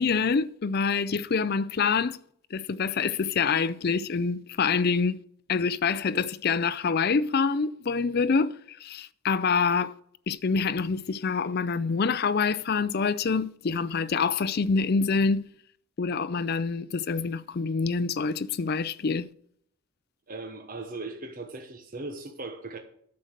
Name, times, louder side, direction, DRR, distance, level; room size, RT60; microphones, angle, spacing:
voice 1, 0.0-2.2 2.5-5.2 5.5-9.9 10.3-15.5 16.0-19.3, left 5 dB, 45° left, 0.4 m, -26 dB
voice 2, 20.3-22.8, right 3 dB, 40° right, 0.9 m, -38 dB
9.5 x 6.5 x 6.5 m
head